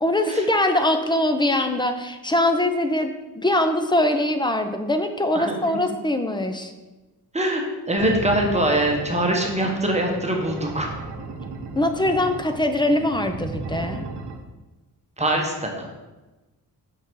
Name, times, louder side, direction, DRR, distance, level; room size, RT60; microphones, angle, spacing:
voice 1, 0.0-6.7 11.8-14.1, left 1 dB, 10° left, 6 dB, 0.5 m, -22 dB
voice 2, 7.9-10.9 15.2-15.9, right 1 dB, 15° right, 0 dB, 1.0 m, -23 dB
sound 1, 8.0-14.4, right 3 dB, 85° right, 0.9 m, -35 dB
5.8 x 5.7 x 4.7 m, 1.1 s
wide cardioid pair, 120°, 39 cm